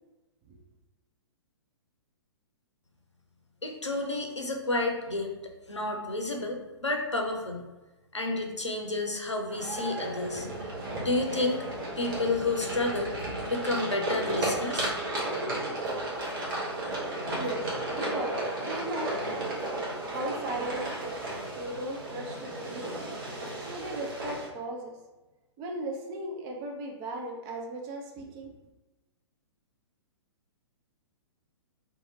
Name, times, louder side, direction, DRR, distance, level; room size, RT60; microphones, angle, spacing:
voice 1, 3.6-5.3 5.7-7.6 8.1-10.5 11.0-11.6 12.0-13.1 13.5-14.9, left 2 dB, 90° left, 2 dB, 0.5 m, -30 dB
sound 1, 9.5-24.5, right 1 dB, 50° right, 0.9 m, -34 dB
voice 2, 17.3-17.7 17.9-19.1 20.0-21.2 21.6-22.9 23.6-25.0 25.6-28.5, right 1 dB, 25° right, 1 dB, 0.5 m, -37 dB
2.7 x 2.5 x 2.7 m, 1.1 s
figure-of-eight pair, 115°, 15 cm